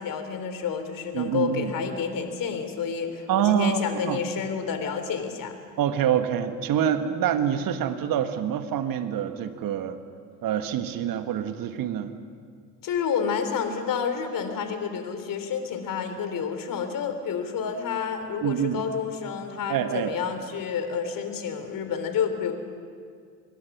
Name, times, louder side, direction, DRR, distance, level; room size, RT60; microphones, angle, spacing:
voice 1, 0.0-5.5 12.8-22.5, left 6 dB, 45° left, 8 dB, 3.4 m, -29 dB
voice 2, 1.1-1.7 3.3-4.2 5.8-10.0 10.4-12.1 18.4-18.8 19.7-20.1, right 9 dB, 50° right, 9 dB, 1.7 m, -26 dB
26.0 x 22.5 x 6.2 m, 2.2 s
figure-of-eight pair, 60°, 45 cm